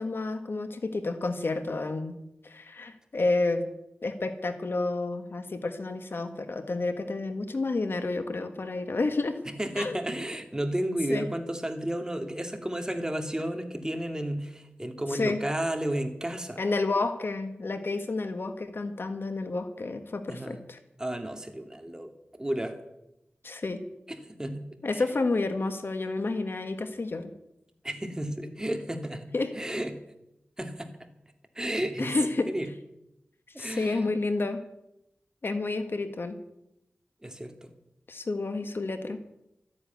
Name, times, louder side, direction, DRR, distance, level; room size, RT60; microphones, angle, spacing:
voice 1, 0.0-2.2 2.4-3.7 4.0-9.4 9.8-10.0 11.1-11.3 15.1-15.4 16.6-20.8 23.4-23.8 24.8-27.3 29.3-29.5 32.0-32.5 33.6-34.6 35.4-36.4 38.1-39.2, left 3 dB, 60° left, 8 dB, 1.6 m, -30 dB
voice 2, 9.5-16.6 20.3-20.6 21.0-22.1 22.4-22.8 24.1-25.0 27.8-30.0 30.6-30.9 31.5-32.7 33.5-34.1 37.2-37.7, right 1 dB, 15° right, 6 dB, 2.4 m, -32 dB
13.5 x 9.8 x 9.4 m, 0.85 s
wide cardioid pair, 65°, 4 cm